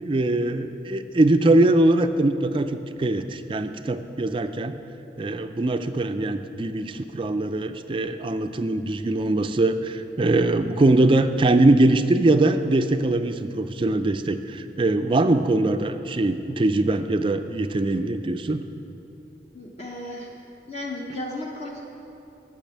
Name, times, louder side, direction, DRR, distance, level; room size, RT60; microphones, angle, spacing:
voice 1, 0.0-4.8 5.2-18.6, right 2 dB, 25° right, 9 dB, 0.3 m, -22 dB
voice 2, 19.5-20.3 20.7-21.8, left 1 dB, 35° left, -2 dB, 0.8 m, -34 dB
10.0 x 6.2 x 7.3 m, 3.0 s
head